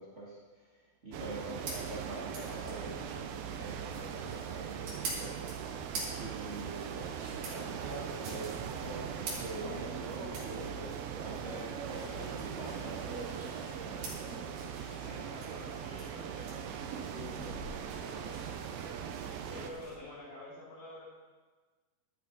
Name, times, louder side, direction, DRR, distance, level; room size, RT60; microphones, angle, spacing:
voice 1, 0.0-5.4 6.1-14.0, right 2 dB, 40° right, -6 dB, 1.0 m, -45 dB
sound 1, 1.1-19.7, right 8 dB, 80° right, 2.5 m, -41 dB
sound 2, 1.5-20.0, right 3 dB, 60° right, 3.7 m, -45 dB
voice 2, 13.9-21.0, left 2 dB, 60° left, -8 dB, 4.4 m, -50 dB
11.5 x 8.5 x 4.0 m, 1.3 s
omnidirectional pair, 4.4 m